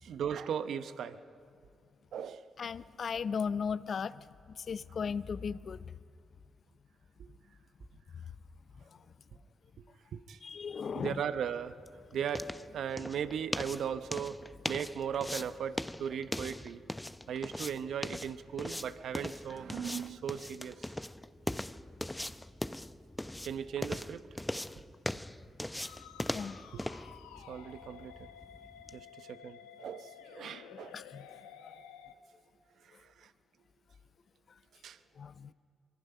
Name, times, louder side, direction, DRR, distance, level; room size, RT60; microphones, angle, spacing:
voice 1, 0.0-1.2 2.1-2.4 7.2-7.3 9.8-9.9 10.1-10.4 10.9-11.8 12.1-16.8 17.3-20.9 23.4-24.2 26.7-26.8 27.5-28.3 28.9-30.9 32.8-33.3 34.8-35.0, right 8 dB, 70° right, 12 dB, 0.9 m, -38 dB
voice 2, 2.6-4.3 4.6-5.8 10.4-11.2 26.3-26.6 30.7-31.3 35.2-35.5, left 6 dB, 55° left, 16 dB, 0.6 m, -36 dB
sound 1, 11.2-29.0, left 1 dB, 10° left, 0.7 m, -41 dB
Musical instrument, 25.8-32.1, left 9 dB, 90° left, 0.9 m, -52 dB
24.5 x 24.0 x 5.6 m, 2.3 s
hypercardioid pair, 45°, 0 cm